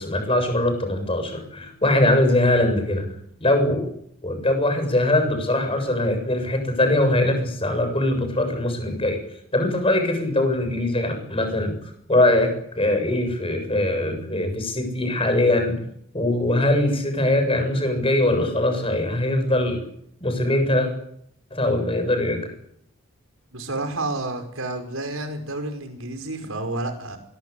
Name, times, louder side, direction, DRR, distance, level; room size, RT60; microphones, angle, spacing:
voice 1, 0.0-3.1 3.4-3.9 4.2-9.2 9.5-11.8 12.1-15.8 16.1-19.8 20.2-20.9 21.5-22.5, left 1 dB, 25° left, 6 dB, 7.6 m, -22 dB
voice 2, 23.5-27.2, right 2 dB, 75° right, 7 dB, 5.3 m, -30 dB
25.0 x 22.5 x 8.5 m, 0.71 s
head